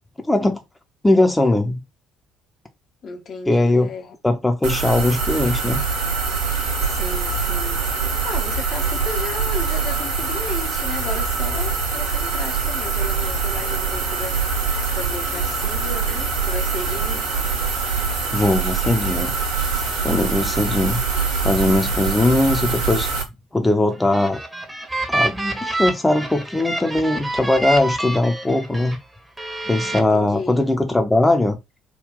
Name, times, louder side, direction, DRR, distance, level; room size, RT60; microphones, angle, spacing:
voice 1, 0.3-0.6 1.0-1.8 3.5-3.9 4.2-5.8 18.3-19.3 20.0-21.0 21.4-23.1 23.5-24.4 25.1-29.0 29.7-31.6, left 2 dB, 15° left, 0.7 m, -19 dB
voice 2, 3.0-4.2 6.8-17.3 29.9-30.6, left 4 dB, 45° left, 0.7 m, -34 dB
sound 1, 4.6-23.2, right 4 dB, 70° right, 1.0 m, -23 dB
sound 2, 23.9-29.0 29.4-30.0, right 2 dB, 15° right, 0.9 m, -27 dB
3.7 x 2.3 x 3.4 m
figure-of-eight pair, 50°, 0 cm